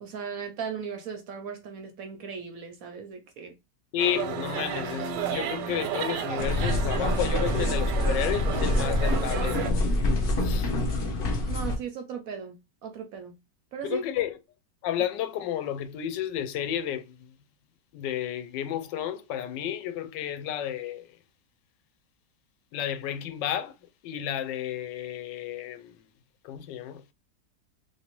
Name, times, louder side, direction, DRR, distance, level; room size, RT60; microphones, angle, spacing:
voice 1, 0.0-3.5 11.5-12.6 12.8-13.3 13.7-14.0, right 6 dB, 70° right, 0.9 m, -37 dB
voice 2, 3.9-9.9 10.4-10.7 13.8-14.4 14.8-17.2 17.9-21.2 22.7-23.7 24.0-25.9 26.4-27.0, left 10 dB, 90° left, 1.2 m, -32 dB
sound 1, 4.0-9.7, right 9 dB, 85° right, 1.2 m, -32 dB
sound 2, 6.4-11.8, left 2 dB, 60° left, 0.6 m, -26 dB
3.1 x 2.8 x 2.9 m
omnidirectional pair, 1.9 m